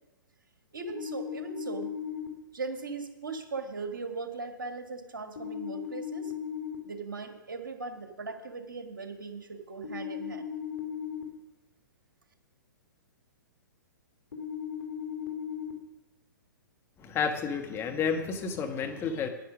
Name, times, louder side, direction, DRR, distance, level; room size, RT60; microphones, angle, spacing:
voice 1, 0.7-1.9 2.5-6.3 6.8-10.5, right 4 dB, 75° right, 6 dB, 1.8 m, -39 dB
sound 1, 0.9-2.3 5.4-6.7 9.8-11.2 14.3-15.7, left 8 dB, 70° left, 2.4 m, -37 dB
voice 2, 17.0-19.3, left 6 dB, 20° left, 5 dB, 1.2 m, -31 dB
10.5 x 9.9 x 6.1 m, 1.0 s
figure-of-eight pair, 120°, 11 cm